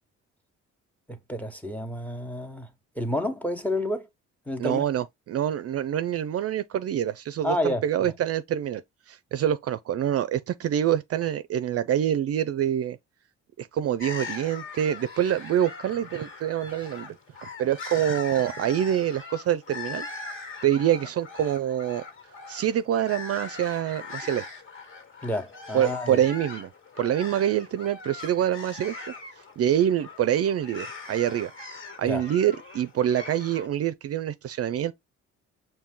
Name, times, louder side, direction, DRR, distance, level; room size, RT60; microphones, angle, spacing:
voice 1, 1.1-2.7 2.9-4.1 4.5-4.8 7.4-7.8 25.2-26.2 32.0-32.2, left 1 dB, 5° left, 1.1 m, -29 dB
voice 2, 4.6-8.8 9.1-13.0 13.6-17.2 17.6-20.1 20.6-22.0 22.5-24.5 25.7-26.7 27.0-29.0 29.6-31.5 32.0-34.9, right 10 dB, 55° right, 0.4 m, -26 dB
sound 1, 14.0-33.7, left 4 dB, 40° left, 1.9 m, -41 dB
5.4 x 2.7 x 3.6 m
cardioid pair, 90°, 30 cm